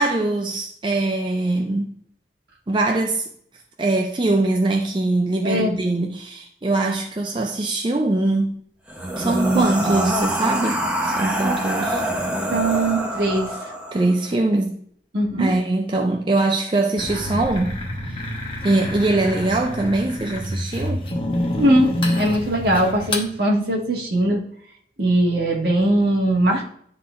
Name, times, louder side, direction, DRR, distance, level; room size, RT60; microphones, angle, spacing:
voice 1, 0.0-1.9 2.7-3.2 3.8-8.6 9.2-12.0 13.9-14.8 15.4-17.7 18.1-18.2 18.6-21.1, right 2 dB, 25° right, 0.5 m, -22 dB
voice 2, 5.4-5.7 9.5-10.0 12.5-13.5 15.1-15.5 21.5-24.4 25.0-26.6, right 1 dB, 65° right, 1.6 m, -20 dB
sound 1, 8.9-14.1, right 1 dB, 10° right, 0.8 m, -24 dB
sound 2, 17.0-23.3, left 1 dB, 30° left, 1.1 m, -27 dB
11.0 x 3.8 x 2.5 m
head